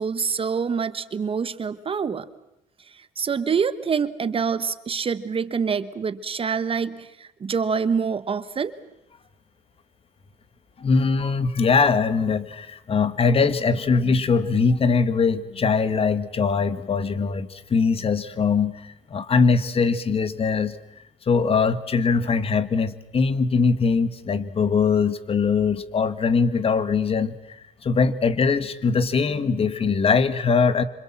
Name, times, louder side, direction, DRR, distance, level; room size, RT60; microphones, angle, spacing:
voice 1, 0.0-2.3 2.9-8.7, right 6 dB, 35° right, 13 dB, 1.2 m, -26 dB
voice 2, 10.8-20.8 21.3-30.8, left 5 dB, 35° left, 13 dB, 1.8 m, -22 dB
26.5 x 26.5 x 7.5 m, 0.84 s
cardioid pair, 110°, 17 cm